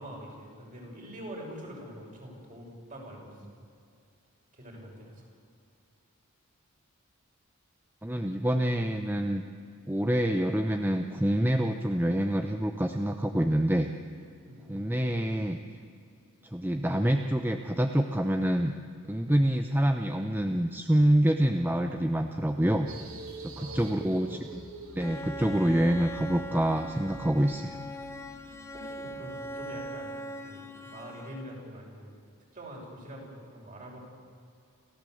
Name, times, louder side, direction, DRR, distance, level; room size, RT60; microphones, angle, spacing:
voice 1, 0.0-3.5 4.5-5.3 14.4-15.2 23.5-24.4 28.7-32.1 32.5-34.0, equal, 35° right, -1 dB, 6.0 m, -45 dB
voice 2, 8.0-9.4 9.9-13.9 14.7-15.6 16.5-18.8 19.0-22.9 23.4-24.4 24.9-27.8, right 1 dB, 10° right, 5 dB, 0.7 m, -26 dB
sound 1, 22.9-29.9, right 2 dB, 75° right, 2.4 m, -46 dB
Bowed string instrument, 25.0-31.7, right 1 dB, 15° left, 1.2 m, -41 dB
30.0 x 14.0 x 7.9 m, 2.4 s
head